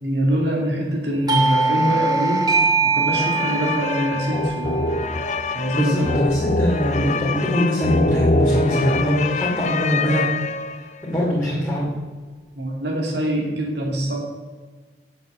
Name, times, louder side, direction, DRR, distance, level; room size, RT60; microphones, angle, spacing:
voice 1, 0.0-2.5 2.8-4.9 5.5-6.2 12.6-14.2, right 1 dB, 75° right, -1 dB, 2.5 m, -24 dB
Doorbell, 1.3-6.6, right 3 dB, 25° right, 1.0 m, -23 dB
sound 1, 3.1-11.0, left 2 dB, 40° left, 0.5 m, -24 dB
voice 2, 5.5-10.3 11.0-11.9, equal, 15° left, -8 dB, 2.5 m, -22 dB
9.0 x 7.7 x 7.0 m, 1.4 s
head